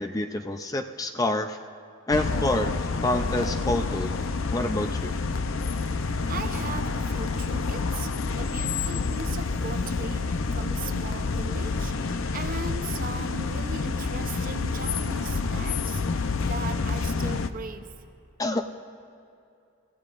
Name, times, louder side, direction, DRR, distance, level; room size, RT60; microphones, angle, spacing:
voice 1, 0.0-1.6 2.1-2.7 3.0-4.2 4.5-5.1 18.4-18.6, left 1 dB, 15° left, 7 dB, 0.4 m, -27 dB
sound 1, 2.1-17.5, left 4 dB, 65° left, 0.6 m, -28 dB
voice 2, 6.3-8.1 8.3-11.9 12.3-18.1, right 4 dB, 40° right, 8 dB, 0.6 m, -38 dB
29.5 x 15.5 x 2.5 m, 2.6 s
head